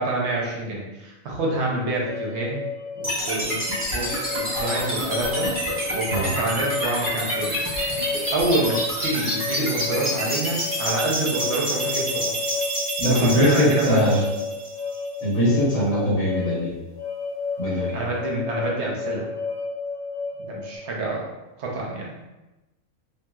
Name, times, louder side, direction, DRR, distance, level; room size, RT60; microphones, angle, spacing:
voice 1, 0.0-2.6 3.0-3.6 3.9-5.5 5.9-7.7 8.3-12.3 13.1-14.2 17.7-19.3 20.4-22.3, right 2 dB, 60° right, -2 dB, 0.9 m, -27 dB
sound 1, 2.0-20.8, left 4 dB, 90° left, 1.2 m, -32 dB
sound 2, 3.0-15.1, right 1 dB, 25° right, 0.9 m, -28 dB
voice 2, 13.0-14.2 15.2-16.7 17.6-18.0, equal, 65° left, -8 dB, 1.6 m, -21 dB
3.0 x 2.8 x 2.3 m, 1.0 s
omnidirectional pair, 1.4 m